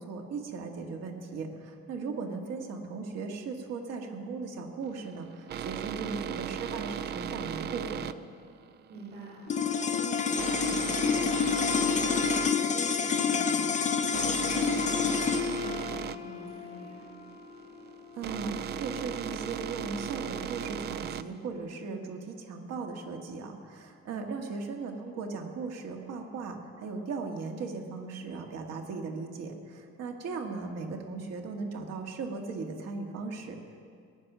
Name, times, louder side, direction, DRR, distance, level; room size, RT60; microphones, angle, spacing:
voice 1, 0.0-8.1 18.2-33.8, right 4 dB, 60° right, 3 dB, 1.9 m, -37 dB
sound 1, 4.8-21.5, right 9 dB, 35° right, 0.4 m, -37 dB
voice 2, 8.9-9.4 9.7-11.0 11.3-13.7 14.0-17.0 24.2-24.4, right 2 dB, 85° right, -6 dB, 5.0 m, -44 dB
sound 2, 9.5-19.9, left 6 dB, 25° left, 0.6 m, -29 dB
19.5 x 10.5 x 6.1 m, 2.2 s
cardioid pair, 165°, 29 cm